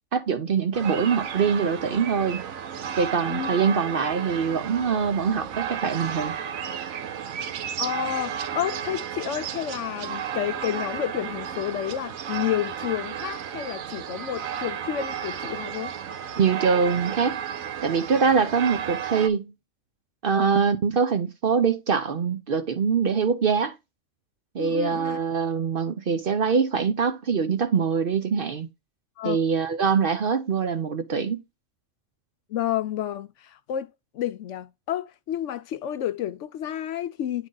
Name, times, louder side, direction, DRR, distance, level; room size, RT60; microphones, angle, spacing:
voice 1, 0.1-2.4 3.0-6.3 16.4-17.4 17.8-19.5 20.2-23.7 24.5-28.7 29.2-31.4, right 6 dB, 55° right, 0.7 m, -23 dB
sound 1, 0.7-19.3, right 8 dB, 90° right, 1.2 m, -33 dB
voice 2, 7.8-15.9 20.3-20.5 24.6-25.2 29.2-29.4 32.5-33.9 34.1-37.5, left 11 dB, 70° left, 0.9 m, -30 dB
9.2 x 3.8 x 3.8 m
omnidirectional pair, 1.4 m